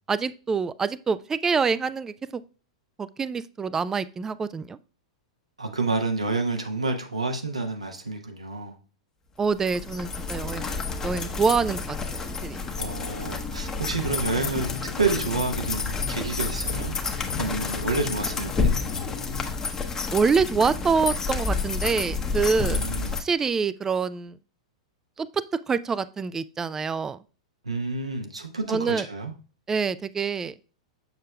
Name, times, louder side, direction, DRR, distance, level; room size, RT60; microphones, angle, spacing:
voice 1, 0.1-2.4 3.0-4.8 9.4-10.8 11.0-12.6 20.1-22.8 23.2-24.4 25.2-25.3 25.7-27.2 28.7-29.1 29.7-30.5, right 5 dB, 15° right, 16 dB, 0.3 m, -26 dB
voice 2, 5.6-8.7 12.8-14.7 15.0-16.9 17.4-18.8 22.7-23.2 27.6-29.3, right 3 dB, 85° right, 4 dB, 1.0 m, -29 dB
sound 1, 9.5-23.2, left 4 dB, 15° left, 0.8 m, -30 dB
sound 2, 13.8-19.6, left 9 dB, 65° left, 0.5 m, -39 dB
6.9 x 6.4 x 2.2 m, 0.35 s
figure-of-eight pair, 95°, 3 cm